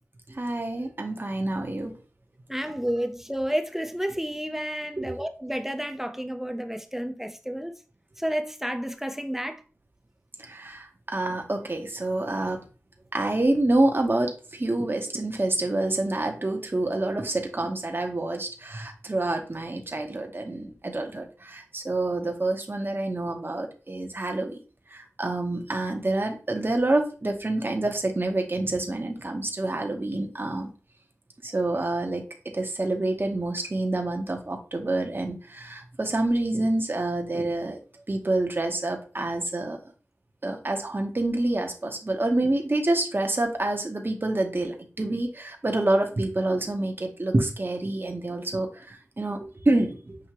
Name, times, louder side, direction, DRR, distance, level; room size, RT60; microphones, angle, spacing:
voice 1, 0.3-1.9 2.7-2.8 5.0-5.1 10.4-12.6 13.1-24.6 24.9-30.7 31.4-37.8 38.1-39.8 40.4-50.2, right 2 dB, 45° right, 0.9 m, -27 dB
voice 2, 2.5-7.7 8.2-9.6, equal, 5° right, 0.5 m, -30 dB
6.1 x 2.8 x 2.9 m
wide cardioid pair, 45°, 5 cm